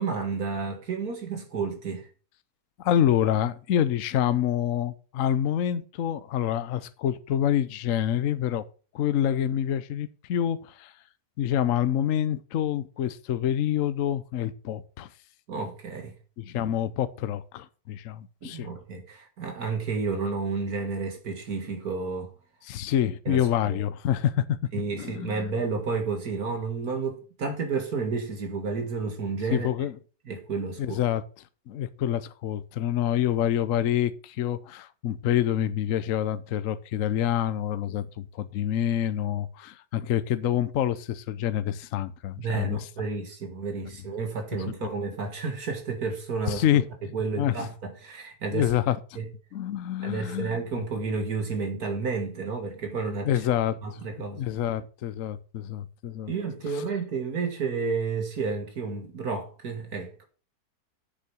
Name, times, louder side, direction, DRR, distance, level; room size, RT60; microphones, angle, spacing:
voice 1, 0.0-2.1 15.5-16.1 18.4-22.3 23.3-23.8 24.7-29.7 30.3-31.0 42.4-46.6 47.1-48.7 49.2-49.3 50.0-53.3 53.8-54.5 56.3-60.3, right 4 dB, 70° right, 2.2 m, -31 dB
voice 2, 2.8-8.6 8.9-10.9 11.4-15.1 16.4-18.7 22.6-24.6 25.0-25.4 29.5-29.9 30.8-31.2 31.7-42.9 46.5-46.9 47.4-47.5 48.5-49.0 49.5-50.6 53.2-53.8 54.3-56.3, left 10 dB, 65° left, 1.0 m, -27 dB
7.8 x 6.7 x 6.1 m
omnidirectional pair, 1.7 m